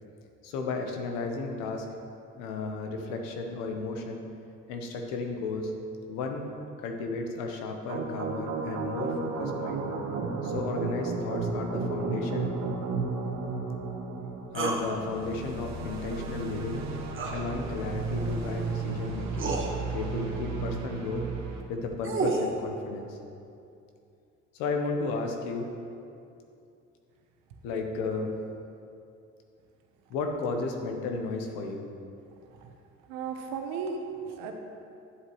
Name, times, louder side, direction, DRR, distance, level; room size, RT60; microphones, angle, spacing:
voice 1, 0.4-1.9 2.4-4.2 4.7-5.7 6.1-6.5 6.8-9.8 10.4-12.5 14.5-16.8 17.3-19.5 19.9-21.2 21.7-23.2 24.5-25.7 27.6-28.4 30.1-31.8, left 3 dB, 90° left, 4 dB, 1.0 m, -33 dB
sound 1, 7.9-21.6, right 4 dB, 55° right, 1.1 m, -33 dB
sound 2, 14.6-14.8 17.1-17.4 18.7-18.8 19.4-19.7 21.7-22.5, right 3 dB, 40° right, 1.4 m, -29 dB
voice 2, 33.1-34.5, right 5 dB, 90° right, 4 dB, 0.9 m, -35 dB
9.7 x 8.1 x 3.1 m, 2.6 s
supercardioid pair, 70°, 32 cm